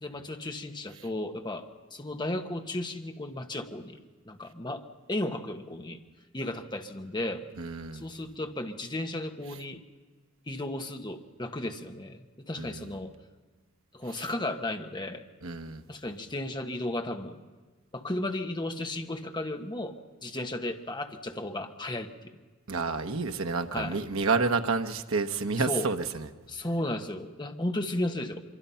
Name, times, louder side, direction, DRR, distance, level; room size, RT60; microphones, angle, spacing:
voice 1, 0.0-4.0 4.3-4.8 5.1-6.0 6.3-7.4 7.9-9.8 10.5-13.1 13.9-15.2 15.9-17.4 17.9-20.0 20.2-22.3 23.7-24.0 25.6-25.9 26.5-28.4, left 1 dB, 20° left, 1.4 m, -34 dB
voice 2, 7.6-8.0 12.6-12.8 15.4-15.8 22.7-26.2, right 4 dB, 80° right, 1.1 m, -29 dB
25.0 x 23.5 x 5.7 m
head